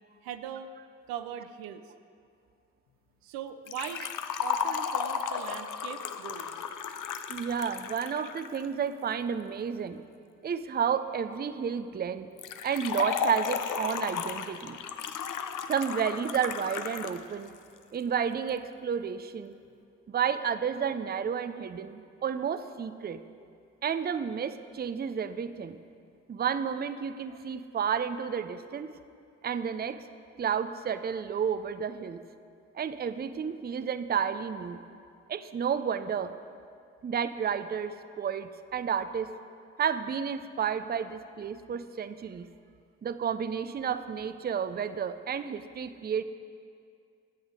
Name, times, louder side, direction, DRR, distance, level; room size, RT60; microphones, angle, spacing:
voice 1, 0.2-0.7 1.1-1.8 3.2-4.0 4.4-6.6, right 10 dB, 75° right, 10 dB, 0.6 m, -40 dB
Liquid, 3.7-8.6 12.4-17.2 17.5-17.6 18.5-18.6, left 7 dB, 55° left, 0.7 m, -34 dB
voice 2, 7.3-10.0 10.4-12.3 12.6-14.8 15.7-17.5 17.9-19.5 20.1-23.2 23.8-25.8 26.3-28.9 29.4-30.0 30.4-32.2 32.7-34.8 35.3-36.4 37.0-39.3 39.8-42.5 43.0-46.2, right 7 dB, 25° right, 12 dB, 0.5 m, -31 dB
11.0 x 8.0 x 5.0 m, 2.3 s
hypercardioid pair, 40°, 37 cm